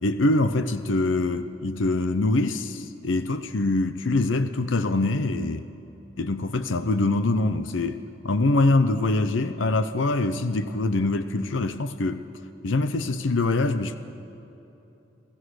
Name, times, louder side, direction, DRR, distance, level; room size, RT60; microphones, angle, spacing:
voice 1, 0.0-5.6 6.2-8.0 8.2-12.2 12.6-14.0, left 2 dB, 90° left, 11 dB, 0.7 m, -24 dB
27.0 x 16.5 x 6.5 m, 3.0 s
head